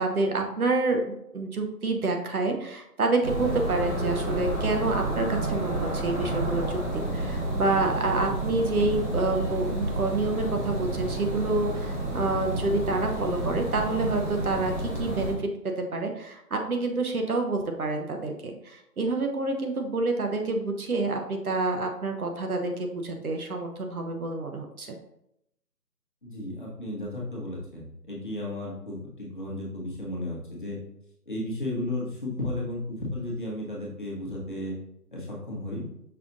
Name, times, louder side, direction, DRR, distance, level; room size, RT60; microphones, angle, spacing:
voice 1, 0.0-25.0, right 3 dB, 60° right, 4 dB, 0.9 m, -28 dB
sound 1, 3.2-15.3, right 1 dB, 45° right, 1.4 m, -30 dB
voice 2, 26.2-30.8 31.3-34.7 35.1-35.8, left 1 dB, 30° left, -4 dB, 1.0 m, -34 dB
5.6 x 2.4 x 3.8 m, 0.79 s
hypercardioid pair, 175°, 49 cm